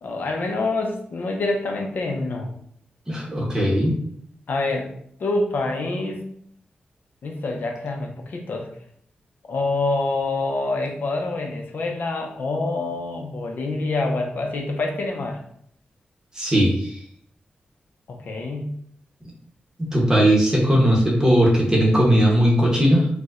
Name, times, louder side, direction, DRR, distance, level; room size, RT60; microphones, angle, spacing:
voice 1, 0.0-2.5 4.5-4.9 5.2-6.2 7.2-8.7 9.5-15.4 18.1-18.8, left 2 dB, 60° left, 1 dB, 0.5 m, -26 dB
voice 2, 3.1-4.0 16.3-17.0 19.8-23.1, equal, 20° right, -3 dB, 0.8 m, -18 dB
4.3 x 2.1 x 2.4 m, 0.66 s
wide cardioid pair, 165°, 3 cm